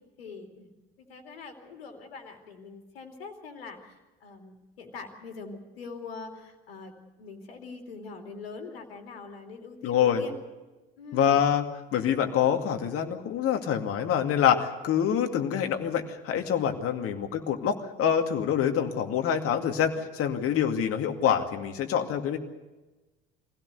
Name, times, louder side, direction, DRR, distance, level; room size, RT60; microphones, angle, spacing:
voice 1, 0.2-0.7 1.0-10.3 11.0-11.4, left 4 dB, 80° left, 4 dB, 2.8 m, -43 dB
voice 2, 9.8-10.2 11.1-11.7 11.9-22.4, left 8 dB, 50° left, 5 dB, 2.3 m, -26 dB
24.0 x 16.5 x 8.2 m, 1.1 s
hypercardioid pair, 65°, 30 cm